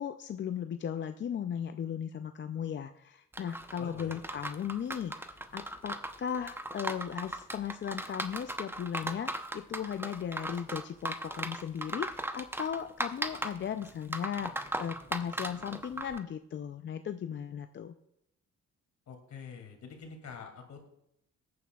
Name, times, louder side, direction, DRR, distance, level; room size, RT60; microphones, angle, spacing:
voice 1, 0.0-17.9, left 8 dB, 40° left, 8 dB, 0.5 m, -37 dB
sound 1, 3.3-16.2, right 1 dB, 5° right, 0.7 m, -38 dB
voice 2, 3.8-4.1 19.1-20.9, left 5 dB, 65° left, 3 dB, 2.6 m, -46 dB
18.5 x 9.5 x 2.3 m, 0.76 s
cardioid pair, 90°, 30 cm